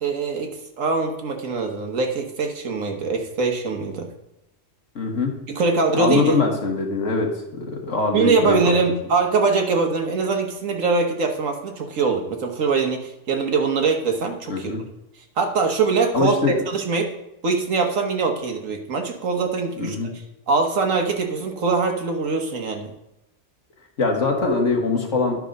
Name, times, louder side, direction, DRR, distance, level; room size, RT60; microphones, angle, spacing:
voice 1, 0.0-4.1 5.5-6.4 8.1-14.7 15.4-16.3 16.7-17.1 17.4-20.0 20.5-22.9, right 4 dB, 85° right, 3 dB, 1.6 m, -22 dB
voice 2, 5.0-5.3 5.9-8.7 14.5-14.8 16.1-16.6 19.8-20.1 24.0-25.4, left 4 dB, 70° left, 1 dB, 1.9 m, -22 dB
11.5 x 4.8 x 5.2 m, 0.87 s
omnidirectional pair, 1.3 m